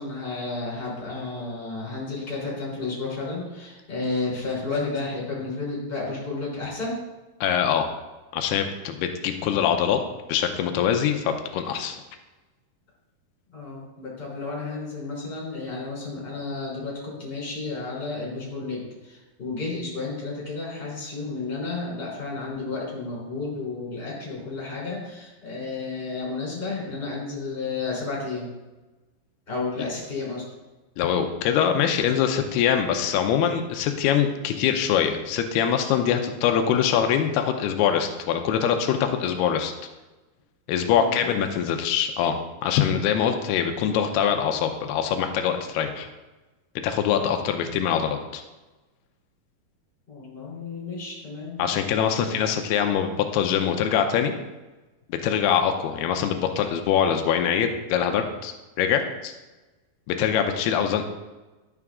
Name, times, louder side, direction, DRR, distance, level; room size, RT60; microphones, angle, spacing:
voice 1, 0.0-6.9 13.5-28.5 29.5-30.4 41.0-41.3 50.1-51.6 52.1-52.4, left 3 dB, 15° left, -5 dB, 3.3 m, -32 dB
voice 2, 7.4-7.9 8.3-10.0 10.3-12.0 31.0-39.7 40.7-42.3 42.6-46.1 46.8-48.4 51.6-54.3 55.1-58.5 58.8-59.3 60.1-61.0, left 8 dB, 90° left, 6 dB, 2.7 m, -23 dB
11.0 x 6.8 x 3.6 m, 1.1 s
omnidirectional pair, 4.5 m